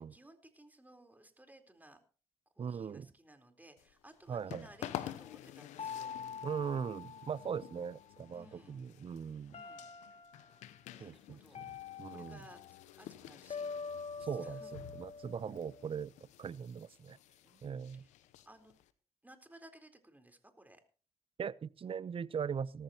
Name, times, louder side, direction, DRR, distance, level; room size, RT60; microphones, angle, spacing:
voice 1, 0.0-2.0 2.6-6.3 8.3-8.8 9.5-9.9 10.9-11.7 12.1-12.6 13.0-13.7 14.2-14.7 17.4-18.1 18.5-18.8 19.2-20.8, right 1 dB, 15° right, 4.1 m, -59 dB
voice 2, 2.6-3.1 4.3-4.7 6.4-9.6 11.0-11.7 12.0-12.4 14.2-16.1 16.4-17.2 17.6-18.1 21.4-22.8, right 7 dB, 50° right, 0.7 m, -40 dB
sound 1, 3.8-18.9, left 13 dB, 80° left, 0.9 m, -51 dB
sound 2, 5.8-8.1 9.5-10.6 11.5-12.8 13.5-15.9, left 6 dB, 60° left, 1.9 m, -45 dB
18.5 x 14.5 x 3.0 m
hypercardioid pair, 45°, 12 cm